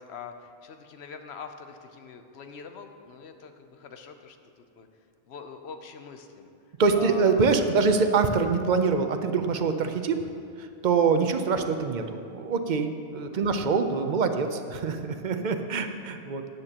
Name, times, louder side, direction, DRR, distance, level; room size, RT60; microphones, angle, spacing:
voice 1, 0.0-4.9 5.2-6.5 6.9-7.8 13.3-13.6, left 5 dB, 70° left, 7 dB, 1.0 m, -44 dB
voice 2, 6.8-10.2 10.6-16.4, right 5 dB, 50° right, 7 dB, 0.7 m, -25 dB
13.0 x 9.4 x 2.9 m, 2.4 s
omnidirectional pair, 1.1 m